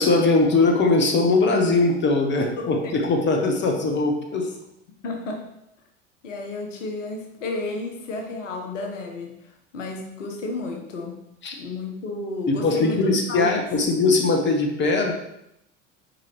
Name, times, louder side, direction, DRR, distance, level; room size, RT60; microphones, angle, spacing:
voice 1, 0.0-4.5 11.4-11.5 12.5-15.1, left 3 dB, 30° left, 3 dB, 1.2 m, -20 dB
voice 2, 5.0-5.4 6.2-11.2 11.5-13.6, left 2 dB, 70° left, 3 dB, 1.1 m, -32 dB
8.9 x 4.7 x 3.1 m, 0.81 s
figure-of-eight pair, 70°, 38 cm